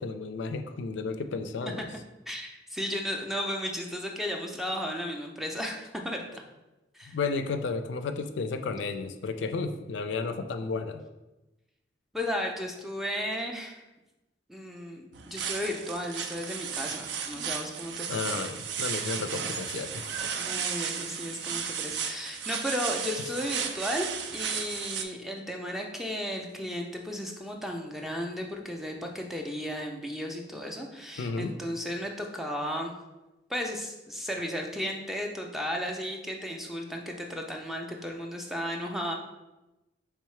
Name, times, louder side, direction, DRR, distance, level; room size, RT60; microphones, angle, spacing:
voice 1, 0.0-1.8 7.1-11.0 18.1-20.2 31.2-31.5, left 4 dB, 80° left, 8 dB, 0.4 m, -33 dB
voice 2, 2.3-6.4 6.9-7.2 12.1-13.8 14.5-18.4 18.9-19.1 19.4-19.6 20.4-32.9 33.5-39.1, equal, ahead, 1 dB, 0.4 m, -34 dB
sound 1, 15.1-25.0, right 7 dB, 70° right, 0.4 m, -34 dB
4.6 x 3.5 x 3.2 m, 1.0 s
head